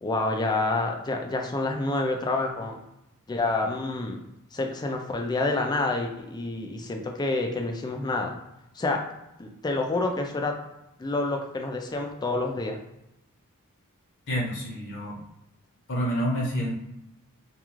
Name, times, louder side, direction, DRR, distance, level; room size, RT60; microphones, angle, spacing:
voice 1, 0.0-2.8 3.3-4.2 4.5-8.3 8.8-9.0 9.4-10.5 11.0-12.8, left 2 dB, 20° left, 2 dB, 0.3 m, -28 dB
voice 2, 14.3-15.2 15.9-16.7, equal, 55° left, -2 dB, 0.8 m, -28 dB
2.4 x 2.3 x 3.0 m, 0.88 s
head